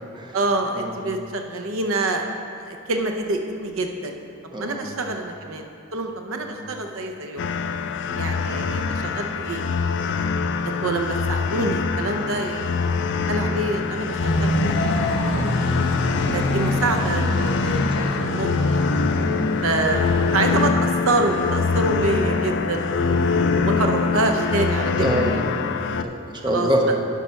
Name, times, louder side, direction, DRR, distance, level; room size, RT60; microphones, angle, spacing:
voice 1, 0.3-4.1 4.6-7.4 8.2-10.3 10.6-15.4 16.0-18.8 19.6-23.1 23.6-25.8 26.4-26.7, right 2 dB, 65° right, 4 dB, 0.7 m, -27 dB
voice 2, 4.5-4.9 6.3-6.5 8.1-8.6 19.1-19.7 23.0-23.7 25.0-25.4 26.0-26.8, right 1 dB, 20° right, 0 dB, 0.9 m, -27 dB
sound 1, 7.4-26.0, left 5 dB, 55° left, 0.4 m, -24 dB
sound 2, 14.2-20.7, left 1 dB, 85° left, 1.0 m, -25 dB
10.5 x 5.6 x 5.7 m, 2.6 s
head